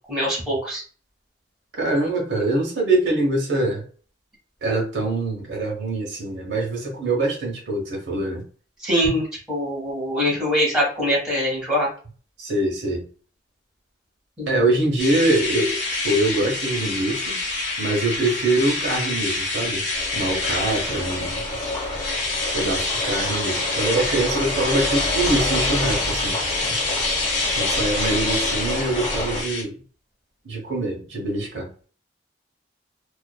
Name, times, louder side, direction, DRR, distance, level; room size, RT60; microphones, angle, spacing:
voice 1, 0.1-0.8 8.8-11.9 14.4-14.7, equal, 5° right, 1.1 m, -23 dB
voice 2, 1.8-3.8 4.6-8.4 12.4-13.1 14.5-17.4 17.8-19.8 20.1-21.4 22.5-26.4 27.6-29.8 30.4-31.7, right 2 dB, 80° right, 0.9 m, -24 dB
sound 1, 15.0-29.6, left 3 dB, 85° left, 0.9 m, -26 dB
sound 2, 19.9-29.4, left 1 dB, 25° left, 1.1 m, -29 dB
2.4 x 2.4 x 2.2 m
head